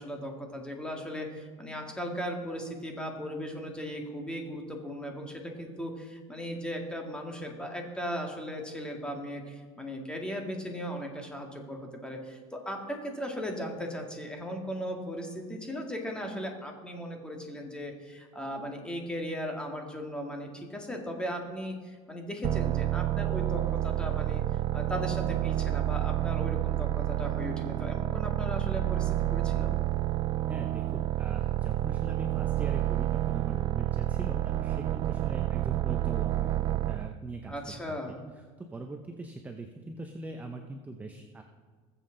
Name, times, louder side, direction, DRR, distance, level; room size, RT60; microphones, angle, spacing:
voice 1, 0.0-24.4 24.7-29.7 37.5-38.2, equal, 5° left, 2 dB, 1.8 m, -37 dB
sound 1, 22.4-37.2, right 14 dB, 35° right, 0.3 m, -29 dB
voice 2, 30.5-36.5 36.9-37.5 38.7-41.4, right 2 dB, 10° right, 4 dB, 0.7 m, -41 dB
20.0 x 7.4 x 3.8 m, 1.5 s
cardioid pair, 135°, 13 cm